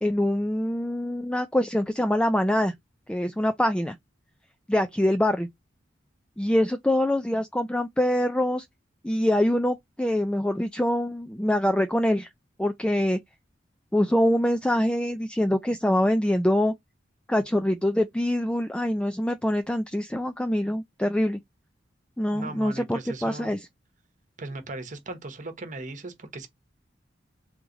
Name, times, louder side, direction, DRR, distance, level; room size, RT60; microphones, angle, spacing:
voice 1, 0.0-2.7 3.1-4.0 4.7-5.5 6.4-8.6 9.0-12.3 12.6-13.2 13.9-16.7 17.3-21.4 22.2-23.6, left 1 dB, 5° left, 0.3 m, -24 dB
voice 2, 22.3-23.5 24.4-26.5, right 2 dB, 45° right, 1.1 m, -38 dB
3.5 x 3.2 x 3.8 m
head